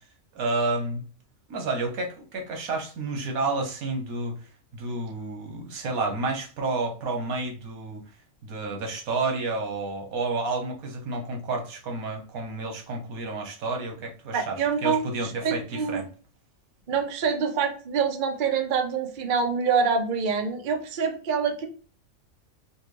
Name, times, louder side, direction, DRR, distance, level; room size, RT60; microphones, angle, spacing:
voice 1, 0.3-1.0 1.5-4.3 4.7-8.0 8.4-16.1, right 3 dB, 90° right, 2 dB, 1.4 m, -30 dB
voice 2, 14.3-16.0 16.9-21.7, right 5 dB, 50° right, 4 dB, 0.7 m, -26 dB
4.2 x 2.3 x 3.2 m, 0.40 s
omnidirectional pair, 1.4 m